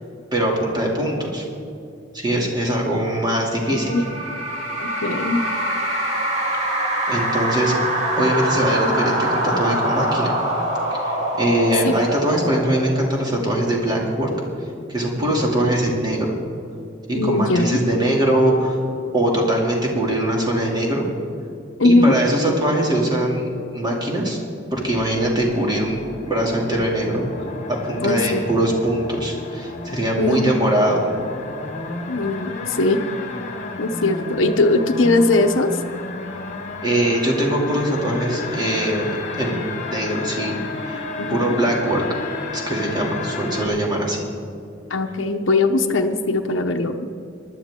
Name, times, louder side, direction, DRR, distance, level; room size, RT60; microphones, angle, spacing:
voice 1, 0.3-1.4 2.1-3.9 7.1-7.8 8.1-10.3 10.9-14.3 14.9-16.4 17.1-18.8 19.1-21.1 21.8-24.4 24.7-27.2 27.7-31.1 36.8-39.1 39.4-40.6 40.8-41.0 41.3-42.0 42.5-44.2, right 1 dB, 20° right, -2 dB, 2.6 m, -22 dB
sound 1, 3.6-13.3, right 1 dB, 40° right, 3.6 m, -24 dB
voice 2, 3.7-4.0 4.8-5.4 11.8-11.9 17.2-17.7 21.8-22.2 28.0-28.4 30.2-30.6 32.1-33.0 33.8-35.8 41.2-41.6 44.9-47.1, left 2 dB, 80° left, 4 dB, 0.8 m, -20 dB
sound 2, 24.7-43.7, left 3 dB, 40° left, 1.5 m, -32 dB
19.5 x 12.0 x 3.7 m, 2.6 s
head